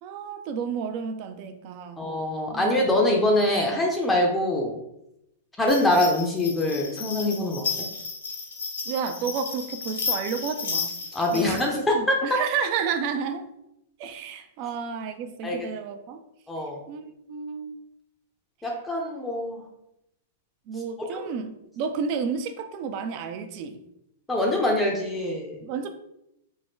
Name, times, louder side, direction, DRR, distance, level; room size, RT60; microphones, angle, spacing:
voice 1, 0.0-2.1 2.5-2.7 8.9-10.9 11.3-13.5 14.0-16.2 16.9-17.8 20.7-23.8 25.6-25.9, right 6 dB, 50° right, 0.4 m, -31 dB
voice 2, 2.0-4.7 5.6-7.9 11.1-12.4 15.4-15.7 16.5-16.8 18.6-19.6 24.3-25.6, left 1 dB, 10° left, 0.5 m, -24 dB
sound 1, 5.7-11.7, left 5 dB, 85° left, 0.8 m, -33 dB
2.6 x 2.2 x 3.5 m
hypercardioid pair, 120°, 0 cm